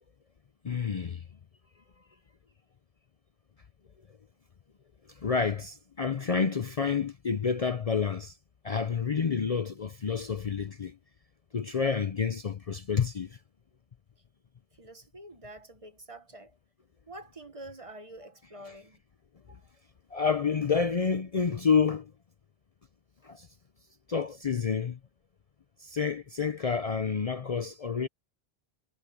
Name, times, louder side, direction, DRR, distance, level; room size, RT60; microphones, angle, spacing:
voice 1, 0.6-1.2 5.2-8.4 8.6-11.0 11.5-13.4 20.1-22.1 23.2-23.5 24.1-25.0 25.8-28.1, left 6 dB, 40° left, 0.6 m, -29 dB
voice 2, 14.7-16.6 17.1-19.0 19.4-19.7, right 1 dB, 30° right, 1.4 m, -47 dB
omnidirectional pair, 1.1 m